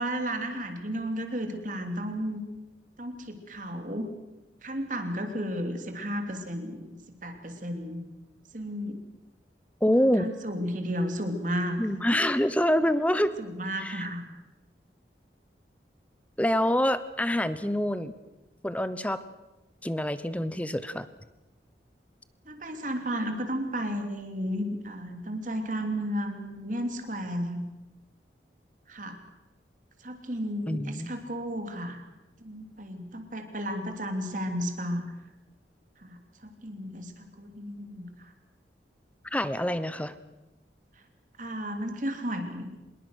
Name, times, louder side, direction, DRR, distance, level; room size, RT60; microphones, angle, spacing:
voice 1, 0.0-2.4 3.0-4.1 4.6-6.9 7.2-8.0 8.5-9.0 10.0-11.8 13.4-14.2 22.4-27.6 28.9-29.2 30.0-32.0 32.4-35.1 36.0-38.3 41.4-42.8, equal, 45° right, 6 dB, 3.1 m, -33 dB
voice 2, 9.8-10.3 11.8-13.4 13.8-14.1 16.4-18.1 18.6-19.2 19.8-21.1 30.7-31.1 39.3-40.1, equal, 10° left, 14 dB, 0.8 m, -26 dB
25.0 x 21.5 x 6.5 m, 1.0 s
head